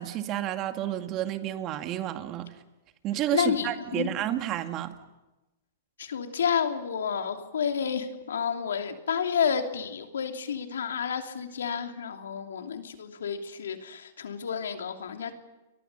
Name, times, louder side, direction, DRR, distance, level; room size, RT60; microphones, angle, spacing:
voice 1, 0.0-2.6 3.0-5.0, right 12 dB, 35° right, 2.2 m, -31 dB
voice 2, 3.3-4.1 6.0-15.3, left 7 dB, 85° left, 2.9 m, -30 dB
30.0 x 23.0 x 5.6 m
hypercardioid pair, 125°, 0 cm